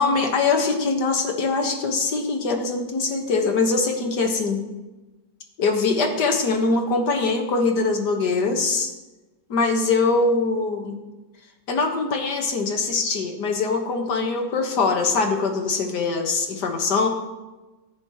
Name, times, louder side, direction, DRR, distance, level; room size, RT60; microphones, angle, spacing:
voice 1, 0.0-4.6 5.6-8.9 9.5-11.0 11.7-17.1, left 4 dB, 70° left, 4 dB, 2.0 m, -22 dB
16.5 x 9.6 x 3.0 m, 1.1 s
omnidirectional pair, 1.9 m